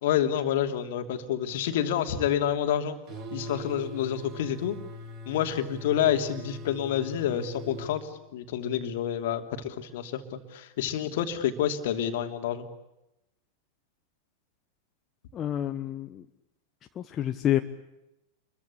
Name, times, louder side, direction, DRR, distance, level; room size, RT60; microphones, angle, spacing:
voice 1, 0.0-3.0 3.3-4.8 5.3-12.7, left 9 dB, 55° left, 7 dB, 2.8 m, -28 dB
sound 1, 3.1-8.0, left 1 dB, 40° right, 6.9 m, -41 dB
voice 2, 15.3-16.2 16.9-17.6, left 11 dB, 30° left, 7 dB, 1.2 m, -28 dB
28.0 x 23.0 x 8.4 m, 0.89 s
figure-of-eight pair, 90°, 0 cm